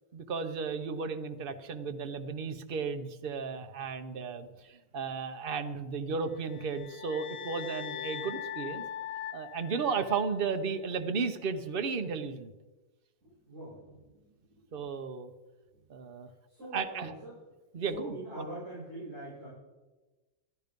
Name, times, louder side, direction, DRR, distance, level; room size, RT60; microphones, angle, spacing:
voice 1, 0.1-8.8 9.3-12.5 14.7-15.3 15.9-16.3 16.7-17.1 17.7-18.5, right 5 dB, 60° right, 8 dB, 0.5 m, -34 dB
sound 1, 6.3-10.6, left 10 dB, 85° left, 0.7 m, -41 dB
voice 2, 13.2-14.4 16.5-17.1 17.7-19.5, right 1 dB, 35° right, -9 dB, 6.7 m, -44 dB
13.5 x 12.5 x 5.2 m, 1.2 s
omnidirectional pair, 2.2 m